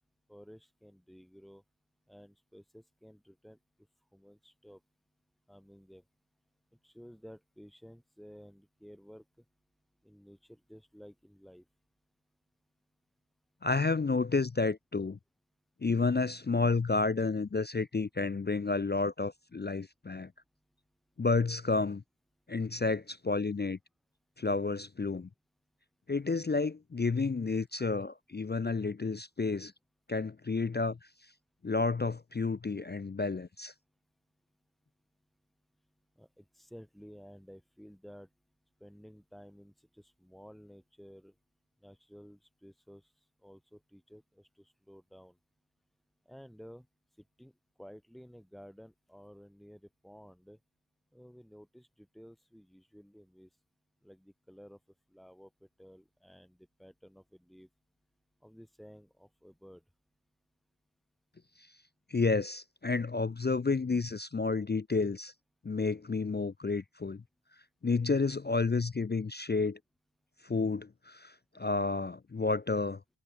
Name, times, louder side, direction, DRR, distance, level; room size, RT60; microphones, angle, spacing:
voice 1, 0.3-1.6 2.1-3.6 4.1-4.8 5.5-6.0 6.7-9.5 10.0-11.7 36.2-38.3 38.8-41.4 41.8-43.1 43.4-45.4 46.3-46.9 47.2-50.6 51.1-53.5 54.0-54.8 55.1-57.7 58.4-59.8, equal, ahead, 6.9 m, -54 dB
voice 2, 13.6-15.2 15.8-20.3 21.2-22.0 22.5-23.8 24.4-25.3 26.1-29.7 30.1-31.0 31.6-33.7 62.1-65.3 65.6-67.2 67.8-69.8 70.4-73.0, left 4 dB, 25° left, 0.3 m, -30 dB
wide cardioid pair, 60°, 47 cm